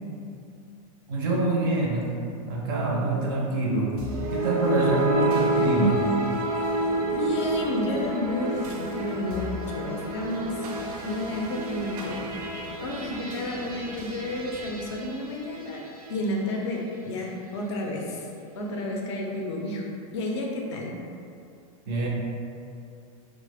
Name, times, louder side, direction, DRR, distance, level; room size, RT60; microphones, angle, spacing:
voice 1, 1.1-2.2 2.5-4.0 4.3-6.1 21.9-22.1, right 2 dB, 35° right, -3 dB, 0.4 m, -25 dB
sound 1, 4.0-16.3, right 1 dB, 85° right, 0.6 m, -30 dB
voice 2, 7.1-10.6 11.0-12.2 12.8-15.8 16.1-18.3 18.5-19.8 20.1-20.9, left 1 dB, 50° left, -1 dB, 0.4 m, -31 dB
3.2 x 2.0 x 3.4 m, 2.5 s
supercardioid pair, 175°, 19 cm